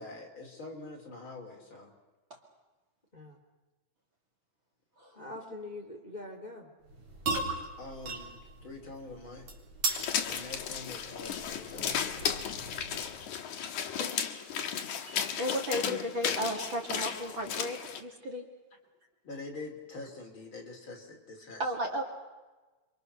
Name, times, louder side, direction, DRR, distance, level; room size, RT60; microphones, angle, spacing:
voice 1, 0.0-1.9 7.8-9.5 10.3-12.5 19.2-21.6, left 2 dB, 40° left, 1 dB, 3.7 m, -45 dB
voice 2, 3.1-3.4 5.1-6.9 15.1-15.3, left 2 dB, 15° left, 2 dB, 2.8 m, -44 dB
sound 1, 6.8-13.2, right 3 dB, 55° right, 4.9 m, -38 dB
sound 2, 9.9-18.0, left 8 dB, 70° left, 2.9 m, -34 dB
voice 3, 15.4-18.5 21.6-22.0, equal, 40° right, 2 dB, 3.1 m, -34 dB
28.5 x 24.5 x 6.7 m, 1.2 s
omnidirectional pair, 3.7 m